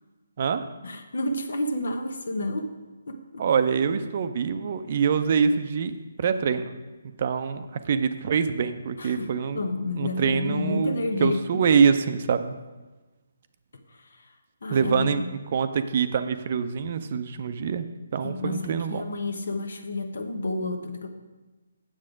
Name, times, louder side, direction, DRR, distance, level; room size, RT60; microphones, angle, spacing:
voice 1, 0.8-2.7 3.1-3.5 9.0-11.6 13.9-14.4 14.6-15.3 18.2-21.1, left 2 dB, 65° left, 6 dB, 1.1 m, -30 dB
voice 2, 3.4-6.7 7.2-9.6 10.0-10.9 11.2-12.5 14.7-17.8 18.1-19.0, right 6 dB, 45° right, 10 dB, 0.5 m, -25 dB
7.6 x 7.3 x 5.0 m, 1.2 s
figure-of-eight pair, 145°, 0 cm